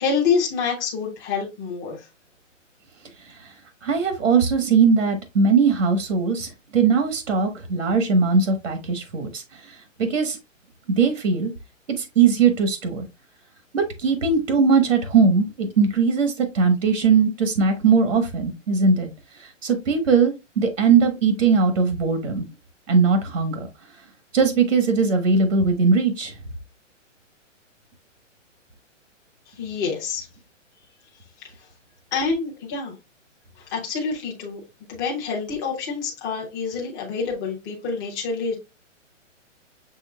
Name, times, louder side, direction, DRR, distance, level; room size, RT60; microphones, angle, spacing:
voice 1, 0.0-2.0 29.6-30.3 32.1-32.9 33.7-34.6 34.9-38.5, left 5 dB, 15° left, 0.7 m, -26 dB
voice 2, 3.8-10.4 11.0-11.5 12.0-13.1 13.7-19.1 19.3-22.5 22.9-23.7 24.3-26.3, right 5 dB, 70° right, 1.3 m, -20 dB
6.3 x 3.5 x 2.3 m
hypercardioid pair, 165°, 38 cm